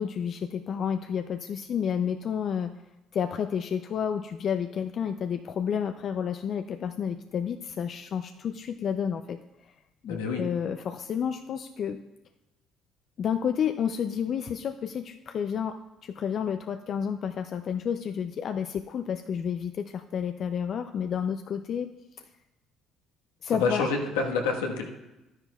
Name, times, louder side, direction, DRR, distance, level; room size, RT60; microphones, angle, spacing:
voice 1, 0.0-2.7 3.1-9.4 10.0-12.0 13.2-21.9 22.2-22.3 23.4-23.8, left 7 dB, 55° left, 8 dB, 0.4 m, -30 dB
voice 2, 10.1-10.4 23.5-24.9, left 4 dB, 90° left, 1 dB, 1.3 m, -27 dB
12.5 x 9.9 x 2.3 m, 1.0 s
hypercardioid pair, 65°, 0 cm